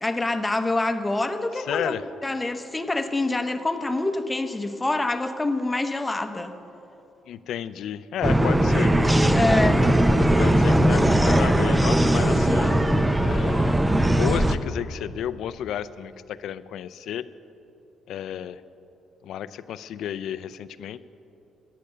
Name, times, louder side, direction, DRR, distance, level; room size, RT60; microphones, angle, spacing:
voice 1, 0.0-1.9 2.2-6.6 9.3-9.8, left 2 dB, 15° left, 8 dB, 0.9 m, -26 dB
voice 2, 1.6-2.1 7.3-9.0 10.4-12.8 13.2-13.8 14.1-17.3 18.1-18.6 19.2-21.0, left 10 dB, 80° left, 15 dB, 0.4 m, -32 dB
sound 1, 8.2-14.6, right 1 dB, 10° right, 0.6 m, -19 dB
13.5 x 10.5 x 6.7 m, 2.9 s
cardioid pair, 90°, 0 cm